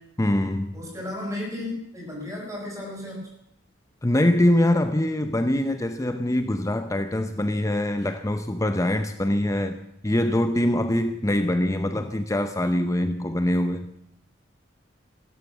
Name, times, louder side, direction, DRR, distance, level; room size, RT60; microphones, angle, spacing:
voice 1, 0.2-0.7 4.0-9.8 10.0-13.9, left 1 dB, 15° left, 9 dB, 0.7 m, -23 dB
voice 2, 0.7-3.3 8.7-8.8, left 1 dB, 15° right, -1 dB, 6.0 m, -34 dB
15.5 x 13.0 x 7.4 m, 0.77 s
head